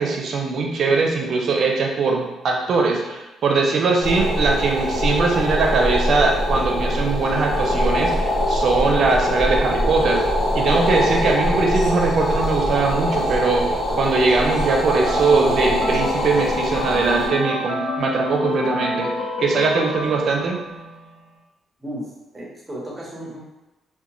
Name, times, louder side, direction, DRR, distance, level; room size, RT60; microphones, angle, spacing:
voice 1, 0.0-10.2 10.5-19.1 19.4-20.6, right 4 dB, 60° right, 1 dB, 0.5 m, -21 dB
sound 1, 4.0-17.3, equal, 50° left, 1.2 m, -23 dB
voice 2, 10.9-11.2 21.8-23.4, equal, 15° right, -4 dB, 1.0 m, -34 dB
sound 2, 14.1-21.1, left 1 dB, 85° left, 0.3 m, -28 dB
2.4 x 2.2 x 3.0 m, 1.0 s
cardioid pair, 90°, 0 cm